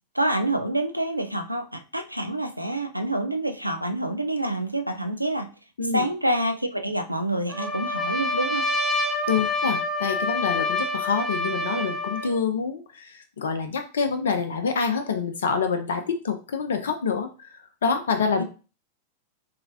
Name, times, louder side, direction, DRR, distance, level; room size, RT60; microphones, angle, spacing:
voice 1, 0.1-5.5 5.9-8.7 18.4-18.5, right 1 dB, 85° right, 7 dB, 0.3 m, -27 dB
Trumpet, 7.5-12.3, left 2 dB, 10° right, 0.7 m, -27 dB
voice 2, 9.3-17.6 17.8-18.4, left 5 dB, 65° left, 6 dB, 0.4 m, -26 dB
3.3 x 2.9 x 2.6 m, 0.34 s
figure-of-eight pair, 90°, 0 cm